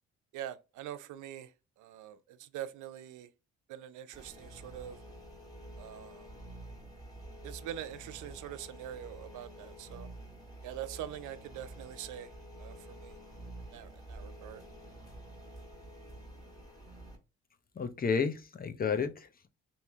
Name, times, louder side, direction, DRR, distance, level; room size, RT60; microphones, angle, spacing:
voice 1, 0.3-1.5 1.8-3.3 3.7-5.0 5.8-6.3 7.4-10.1 10.6-12.3 12.6-13.2 13.7-14.6, right 11 dB, 80° right, 0.5 m, -44 dB
sound 1, 4.1-17.2, right 1 dB, 15° left, 1.7 m, -49 dB
voice 2, 17.7-19.5, left 6 dB, 30° left, 0.6 m, -32 dB
3.1 x 2.8 x 3.5 m
cardioid pair, 90°, 30 cm